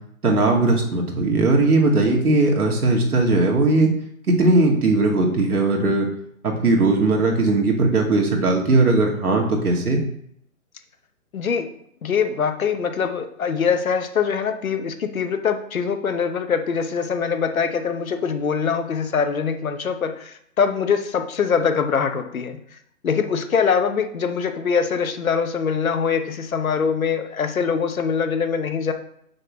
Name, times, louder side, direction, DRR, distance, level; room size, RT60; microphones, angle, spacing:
voice 1, 0.2-3.9 4.3-6.1 6.4-10.0, right 2 dB, 90° right, 0 dB, 2.4 m, -18 dB
voice 2, 11.3-11.7 12.0-22.6 23.0-28.9, left 6 dB, 70° left, 7 dB, 1.2 m, -23 dB
6.5 x 4.0 x 6.3 m, 0.71 s
hypercardioid pair, 170°, 43 cm